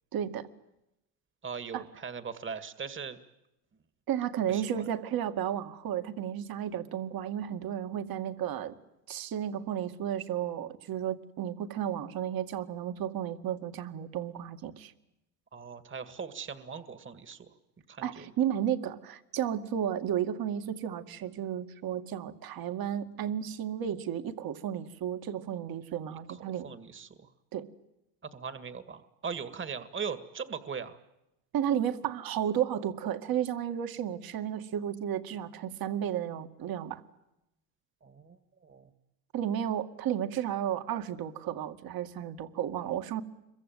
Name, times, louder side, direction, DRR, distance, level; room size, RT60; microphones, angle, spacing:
voice 1, 0.1-0.5 1.7-1.8 4.1-8.7 9.1-14.9 18.0-26.6 27.5-27.7 31.5-37.0 39.3-43.2, right 10 dB, 50° right, 8 dB, 2.3 m, -33 dB
voice 2, 1.4-3.2 4.5-4.9 15.5-17.5 17.9-18.3 26.3-27.2 28.2-31.0 38.0-38.9, right 6 dB, 25° right, 11 dB, 2.0 m, -40 dB
27.0 x 23.5 x 9.3 m, 0.90 s
supercardioid pair, 90°, 47 cm